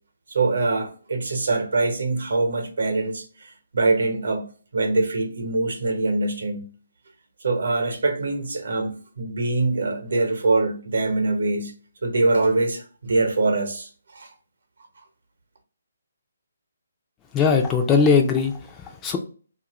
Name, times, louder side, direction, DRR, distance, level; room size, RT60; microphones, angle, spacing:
voice 1, 0.3-6.6 7.4-11.7 12.0-14.3, right 3 dB, 75° right, 0.8 m, -24 dB
voice 2, 17.3-19.2, left 5 dB, 15° left, 0.3 m, -20 dB
2.7 x 2.5 x 2.9 m
hypercardioid pair, 160°, 0 cm